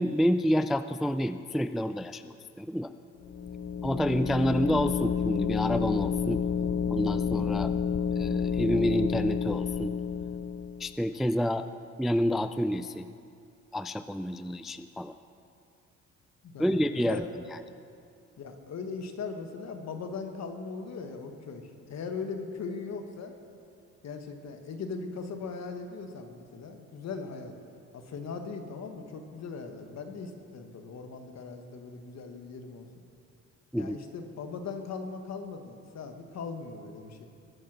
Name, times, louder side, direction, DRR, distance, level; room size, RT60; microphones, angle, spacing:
voice 1, 0.0-2.9 3.8-6.4 6.9-7.7 8.1-9.9 10.8-11.7 12.0-13.1 13.7-15.1 16.6-17.2 33.7-34.0, equal, ahead, 11 dB, 0.3 m, -28 dB
sound 1, 3.2-10.9, left 7 dB, 40° left, 0.7 m, -30 dB
voice 2, 16.4-17.3 18.4-23.3 24.0-27.6 27.9-32.9 33.8-37.3, left 4 dB, 60° left, 6 dB, 1.5 m, -39 dB
20.5 x 7.7 x 6.2 m, 2.4 s
cardioid pair, 90°, 30 cm